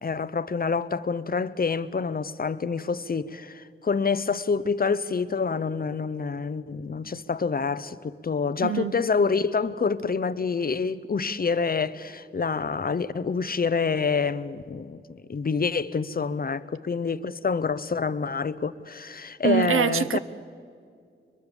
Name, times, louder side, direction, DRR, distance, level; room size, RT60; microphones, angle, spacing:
voice 1, 0.0-20.2, left 5 dB, 45° left, 0.9 m, -27 dB
voice 2, 8.6-8.9 19.4-20.2, right 9 dB, 85° right, 0.8 m, -24 dB
23.0 x 22.5 x 7.2 m
cardioid pair, 65°, 21 cm